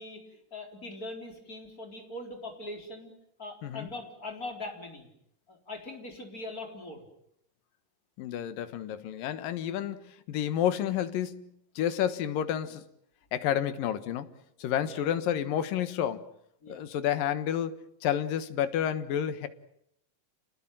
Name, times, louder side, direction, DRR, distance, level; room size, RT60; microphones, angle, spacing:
voice 1, 0.0-3.1 3.4-5.1 5.5-7.0 14.8-15.2 16.6-16.8, left 2 dB, 25° left, 4 dB, 4.4 m, -41 dB
voice 2, 8.2-12.8 13.3-14.3 14.6-16.3 16.7-19.5, left 10 dB, 85° left, 12 dB, 3.1 m, -30 dB
29.0 x 19.5 x 9.1 m, 0.73 s
omnidirectional pair, 3.9 m